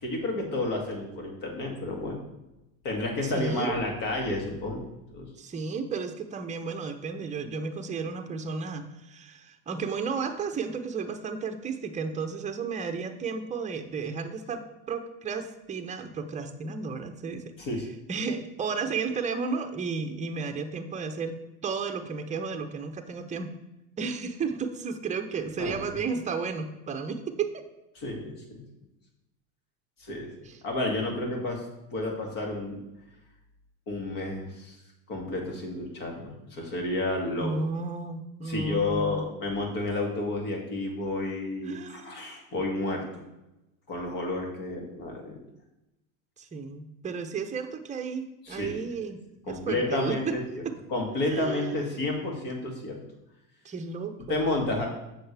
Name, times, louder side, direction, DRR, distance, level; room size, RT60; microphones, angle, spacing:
voice 1, 0.0-2.2 2.8-4.9 5.1-5.3 17.6-17.9 25.6-25.8 28.0-28.6 30.0-30.3 30.6-31.6 31.9-32.8 33.9-34.7 35.1-37.5 38.4-43.2 43.9-45.4 48.4-48.8 49.5-50.4 50.9-53.0 54.3-54.9, left 2 dB, 50° left, 1 dB, 2.4 m, -31 dB
voice 2, 3.2-3.8 5.4-17.4 18.1-21.3 21.6-23.5 24.0-27.6 30.5-30.6 37.3-39.2 41.6-42.2 46.4-49.2 49.5-50.4 50.6-50.7 51.3-51.8 53.6-54.5, right 5 dB, 15° right, 6 dB, 0.8 m, -33 dB
7.7 x 6.5 x 3.4 m, 0.93 s
supercardioid pair, 105°, 43 cm